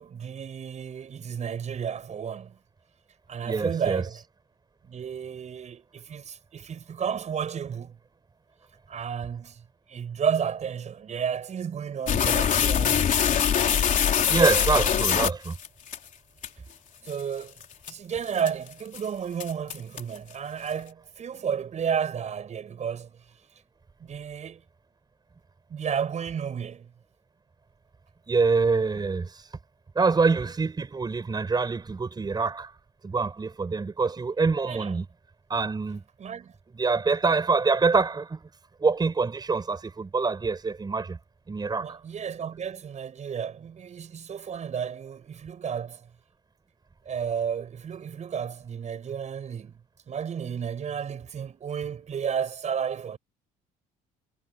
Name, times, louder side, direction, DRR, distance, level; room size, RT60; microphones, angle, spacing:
voice 1, 0.0-2.6 3.3-4.2 4.8-8.0 8.9-9.6 9.9-13.6 17.1-17.5 17.9-23.1 24.0-24.6 25.7-26.9 34.7-34.9 36.2-36.5 41.8-46.1 47.0-49.7 50.1-53.2, right 7 dB, 45° right, 6.5 m, -32 dB
voice 2, 3.4-4.0 14.3-15.6 28.3-29.5 30.0-32.7 33.0-35.1 35.5-36.0 36.8-38.4 38.8-41.2 41.5-42.0, right 4 dB, 25° right, 5.5 m, -25 dB
sound 1, 12.1-16.0 16.4-16.5 17.1-17.2 17.6-17.9 18.4-18.7 18.9-19.0 19.4-20.2, left 8 dB, 50° left, 3.9 m, -23 dB
cardioid pair, 110°, 17 cm